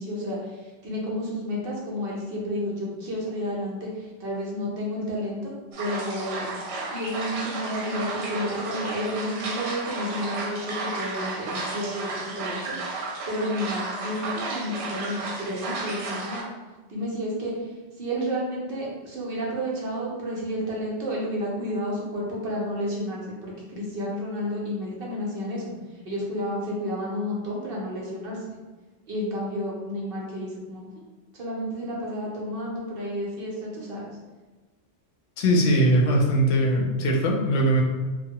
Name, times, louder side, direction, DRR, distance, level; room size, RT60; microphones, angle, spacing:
voice 1, 0.0-6.5 6.9-12.8 13.3-16.4 16.9-17.7 18.0-25.7 26.0-28.4 29.1-31.0 31.3-34.1, equal, 55° right, -4 dB, 0.9 m, -31 dB
sound 1, 5.7-16.4, right 3 dB, 85° right, 0.9 m, -33 dB
voice 2, 35.4-37.8, right 1 dB, 90° left, 0 dB, 0.9 m, -21 dB
3.0 x 2.1 x 2.8 m, 1.3 s
omnidirectional pair, 1.2 m